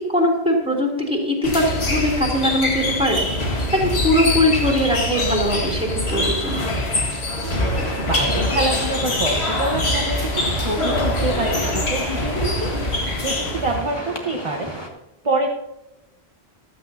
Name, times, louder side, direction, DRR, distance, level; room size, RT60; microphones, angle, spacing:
voice 1, 0.1-6.7, equal, 5° right, -2 dB, 3.1 m, -21 dB
sound 1, 1.4-13.9, left 1 dB, 80° left, 2.1 m, -24 dB
voice 2, 7.4-14.7 15.2-15.5, right 2 dB, 30° right, 0 dB, 1.3 m, -26 dB
sound 2, 7.5-14.9, equal, 25° left, 1.9 m, -34 dB
15.0 x 13.0 x 2.8 m, 0.93 s
omnidirectional pair, 1.1 m